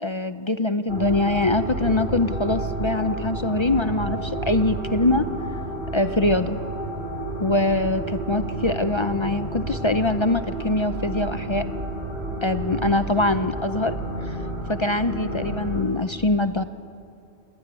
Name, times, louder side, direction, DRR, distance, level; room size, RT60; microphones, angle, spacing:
voice 1, 0.0-5.3 5.9-6.6 7.4-11.7 12.4-13.9 14.3-14.4 14.7-16.6, left 2 dB, 30° left, 11 dB, 0.6 m, -23 dB
sound 1, 0.9-15.8, right 1 dB, 70° right, 3.4 m, -30 dB
29.5 x 19.0 x 9.7 m, 2.6 s
omnidirectional pair, 1.1 m